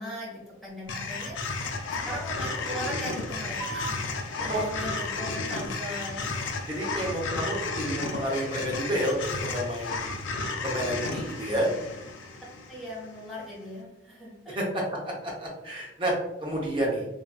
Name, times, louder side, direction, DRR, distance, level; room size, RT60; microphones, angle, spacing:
voice 1, 0.0-1.7 1.9-6.3 12.7-14.6, equal, ahead, -6 dB, 1.0 m, -39 dB
sound 1, 0.9-13.2, left 3 dB, 75° left, 0.4 m, -33 dB
sound 2, 3.6-10.6, right 4 dB, 70° right, 0.6 m, -48 dB
voice 2, 4.4-4.7 6.7-10.1 10.6-11.7 14.5-14.8 15.2-16.1 16.4-17.1, right 1 dB, 25° right, -3 dB, 0.7 m, -30 dB
3.1 x 2.7 x 2.2 m, 0.93 s
head